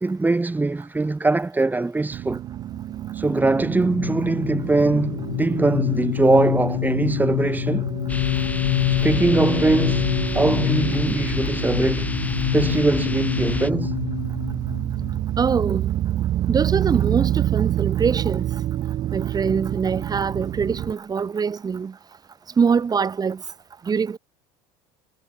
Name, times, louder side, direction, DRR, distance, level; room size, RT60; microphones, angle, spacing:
voice 1, 0.0-2.4 3.1-7.9 8.9-10.1 10.3-12.1 12.5-13.9, right 3 dB, 15° right, 1.8 m, -22 dB
sound 1, 2.1-20.9, right 12 dB, 50° right, 6.0 m, -28 dB
sound 2, 3.3-15.8, left 20 dB, 85° left, 2.5 m, -27 dB
sound 3, 8.1-13.7, left 2 dB, 10° left, 4.2 m, -31 dB
voice 2, 15.4-15.9 16.5-18.5 19.1-21.9 22.6-23.4 23.9-24.2, right 6 dB, 30° right, 4.2 m, -23 dB
supercardioid pair, 95°, 14 cm